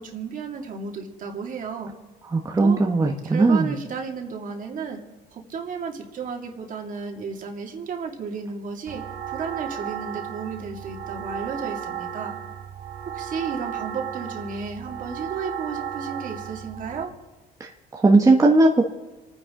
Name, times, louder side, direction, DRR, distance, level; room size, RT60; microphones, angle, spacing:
voice 1, 0.0-1.9 2.6-2.8 3.2-5.0 5.3-12.3 13.1-17.1, right 5 dB, 50° right, 2 dB, 2.4 m, -33 dB
voice 2, 2.3-3.7 17.6-18.8, right 2 dB, 20° right, 1 dB, 1.1 m, -18 dB
sound 1, 8.9-17.0, right 9 dB, 75° right, 1.6 m, -34 dB
27.0 x 9.8 x 3.8 m, 1.2 s
cardioid pair, 110°, 17 cm